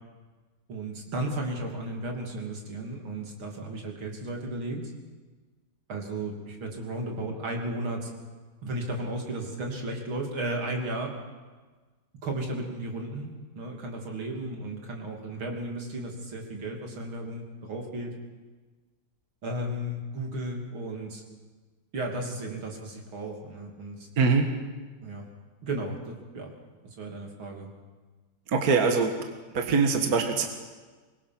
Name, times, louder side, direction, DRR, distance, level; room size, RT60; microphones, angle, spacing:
voice 1, 0.7-4.9 5.9-8.1 8.6-11.1 12.2-18.1 19.4-21.2 21.9-24.1 25.0-25.2 25.6-26.5 26.8-27.7, right 1 dB, 75° right, 1 dB, 3.8 m, -34 dB
voice 2, 28.5-29.2 29.5-30.5, right 4 dB, 45° right, 4 dB, 2.0 m, -23 dB
24.5 x 21.0 x 6.1 m, 1.4 s
omnidirectional pair, 2.3 m